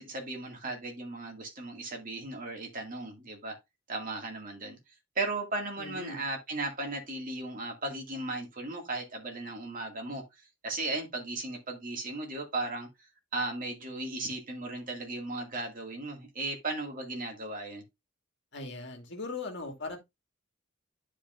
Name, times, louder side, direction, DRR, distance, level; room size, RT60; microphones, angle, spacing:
voice 1, 0.0-3.6 3.9-4.8 5.2-10.2 10.6-12.9 13.3-17.8, right 2 dB, 40° right, 2.3 m, -36 dB
voice 2, 5.8-6.2 18.5-20.0, left 3 dB, 55° left, 2.2 m, -39 dB
11.5 x 5.1 x 2.6 m
head